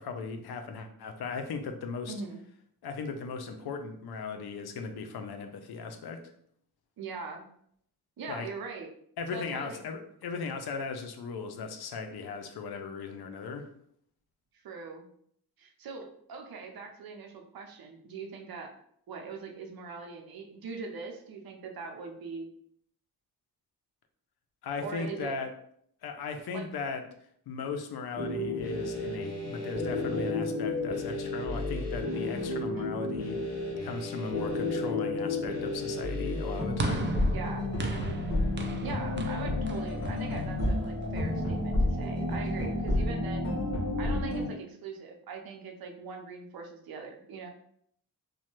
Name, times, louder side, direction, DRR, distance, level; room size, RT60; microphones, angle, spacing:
voice 1, 0.0-2.1 2.8-6.2 8.3-8.5 9.2-13.7 24.6-25.5 26.0-27.0 27.5-33.4 33.8-37.2, left 4 dB, 85° left, 6 dB, 0.5 m, -37 dB
voice 2, 2.1-2.4 7.0-7.4 8.2-8.9 9.3-9.8 14.6-15.1 15.6-18.7 19.1-22.5 24.8-25.3 26.5-26.7 32.7-33.1 37.3-37.7 38.8-43.5 44.0-47.5, right 4 dB, 70° right, 3 dB, 0.7 m, -41 dB
sound 1, 28.2-44.5, left 2 dB, 45° left, 1.4 m, -31 dB
sound 2, 36.8-41.2, right 3 dB, 30° right, 0.4 m, -37 dB
3.1 x 2.2 x 3.0 m, 0.66 s
cardioid pair, 95°, 37 cm